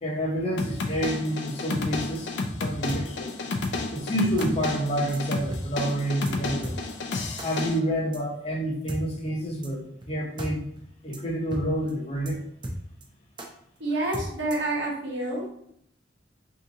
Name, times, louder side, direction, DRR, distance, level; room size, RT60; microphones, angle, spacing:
voice 1, 0.0-2.3 2.6-3.3 3.9-6.8 7.4-9.8 10.1-10.6 11.0-12.4, equal, 35° left, -2 dB, 0.7 m, -28 dB
sound 1, 0.6-7.8, left 3 dB, 65° left, 0.4 m, -31 dB
sound 2, 2.9-3.0 3.6-3.7 4.4-4.5 5.1-5.2 5.5-5.6 5.9-6.0 6.3-6.4 6.6-6.8 7.4-7.5 8.1-8.2 8.9-9.0 9.6-9.7 10.0-10.1 10.4-10.5 10.8-10.9 11.1-11.2 11.5-11.6 11.9-12.0 12.3-12.4 12.6-13.1 13.4-13.5 14.1-14.7, right 1 dB, 25° right, 0.4 m, -35 dB
voice 2, 13.8-15.5, right 2 dB, 75° right, -3 dB, 1.0 m, -28 dB
3.6 x 2.7 x 2.7 m, 0.71 s
head